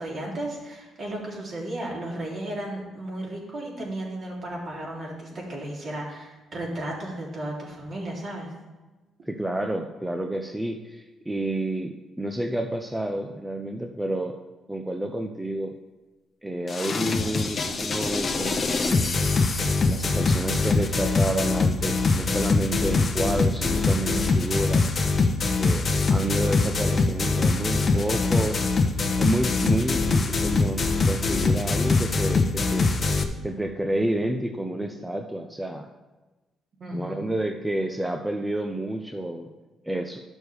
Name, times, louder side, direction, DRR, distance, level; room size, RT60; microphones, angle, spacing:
voice 1, 0.0-8.5 36.8-37.2, right 1 dB, 50° right, -3 dB, 3.0 m, -34 dB
voice 2, 9.3-14.4 14.7-15.7 16.4-19.2 19.9-24.9 25.6-28.6 29.2-32.9 33.4-35.9 36.9-39.5 39.8-40.2, right 1 dB, 10° right, 4 dB, 0.6 m, -29 dB
sound 1, 16.7-33.2, left 3 dB, 40° left, 0.9 m, -23 dB
13.0 x 6.2 x 3.5 m, 1.2 s
cardioid pair, 90°, 0 cm